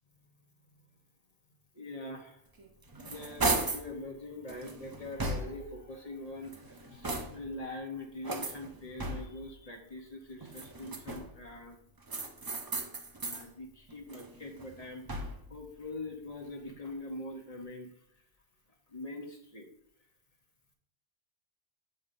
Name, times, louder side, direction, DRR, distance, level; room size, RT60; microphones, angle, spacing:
voice 1, 1.7-2.4 3.0-11.8 13.2-17.9 18.9-19.7, left 2 dB, 40° left, 1 dB, 0.9 m, -43 dB
sound 1, 2.6-3.9 4.5-5.8 6.4-7.6 8.2-9.5 10.4-11.4 12.1-13.5 13.9-15.5, right 2 dB, 30° right, 0.4 m, -36 dB
6.7 x 5.3 x 2.6 m, 0.67 s
omnidirectional pair, 1.1 m